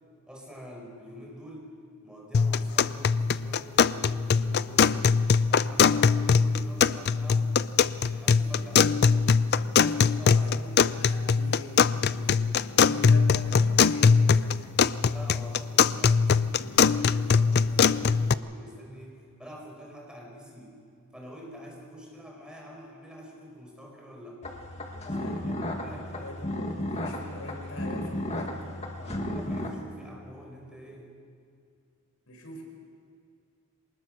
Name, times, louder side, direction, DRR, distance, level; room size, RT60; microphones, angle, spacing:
voice 1, 0.3-1.7 2.0-7.6 8.1-9.3 9.9-10.5 15.1-20.8 21.1-24.4 25.0-26.4 29.0-31.1, equal, 5° right, -2 dB, 4.6 m, -46 dB
sound 1, 2.3-18.3, left 6 dB, 50° left, 0.4 m, -22 dB
voice 2, 10.3-14.7 16.7-16.8 25.1-25.9 26.1-28.6 32.3-32.6, left 1 dB, 80° left, 2 dB, 4.8 m, -44 dB
sound 2, 24.4-29.7, left 1 dB, 30° left, 2.0 m, -34 dB
24.5 x 20.0 x 6.5 m, 2.4 s
head